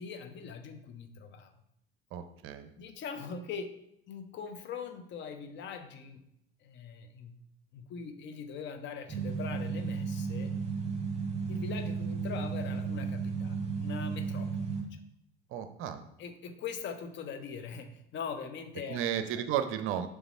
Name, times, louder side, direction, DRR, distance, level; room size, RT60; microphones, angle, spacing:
voice 1, 0.0-1.5 2.8-3.7 4.1-6.2 6.6-7.3 7.7-10.5 11.5-15.0 16.2-19.0 19.4-19.7, left 6 dB, 40° left, 7 dB, 0.8 m, -42 dB
voice 2, 2.1-2.7 15.5-16.1 18.9-20.1, right 10 dB, 45° right, 10 dB, 0.6 m, -33 dB
sound 1, 9.1-14.8, right 5 dB, 20° right, 1.5 m, -34 dB
7.0 x 3.6 x 5.4 m, 0.77 s
figure-of-eight pair, 65°, 30 cm